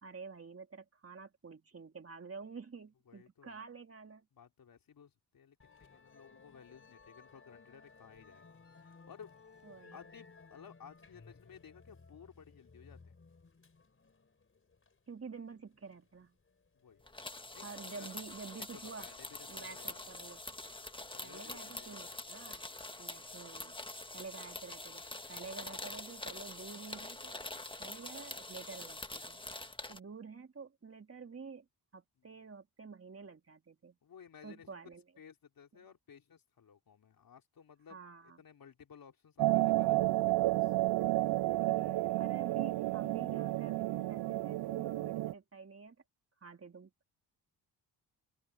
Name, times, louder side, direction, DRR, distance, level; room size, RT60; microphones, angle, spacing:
voice 1, 0.0-4.2 9.6-10.0 15.1-16.4 17.6-19.1 19.5-20.4 21.2-22.7 23.0-23.8 24.1-25.0 25.3-27.3 27.8-29.4 29.9-31.7 31.9-34.0 34.4-35.0 37.9-38.4 41.7-46.0 46.4-46.9, right 5 dB, 35° right, 2.8 m, -49 dB
voice 2, 3.1-3.6 4.3-8.6 8.8-9.3 9.9-13.1 16.7-17.0 17.5-18.1 18.6-18.7 19.0-20.0 21.1-22.3 32.2-32.4 34.0-34.8 35.2-40.7, left 7 dB, 55° left, 3.4 m, -57 dB
Musical instrument, 5.6-21.1, left 4 dB, 30° left, 4.5 m, -60 dB
sound 1, 17.1-30.0, left 2 dB, 10° left, 1.5 m, -45 dB
sound 2, 39.4-45.3, right 17 dB, 70° right, 0.5 m, -31 dB
cardioid pair, 80°, 41 cm